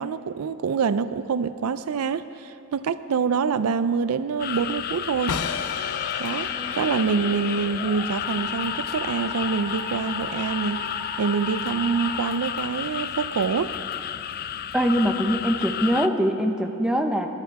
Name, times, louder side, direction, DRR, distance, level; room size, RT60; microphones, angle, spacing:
voice 1, 0.0-5.4 6.2-10.8 11.2-13.7, right 5 dB, 75° right, 14 dB, 0.4 m, -26 dB
sound 1, 4.4-16.1, left 9 dB, 45° left, 0.4 m, -32 dB
sound 2, 5.3-11.3, left 6 dB, 80° left, 0.7 m, -36 dB
Musical instrument, 6.3-13.2, equal, 15° left, 2.1 m, -39 dB
voice 2, 14.7-17.3, equal, 5° right, 3 dB, 0.7 m, -22 dB
22.0 x 9.5 x 4.7 m, 2.7 s
head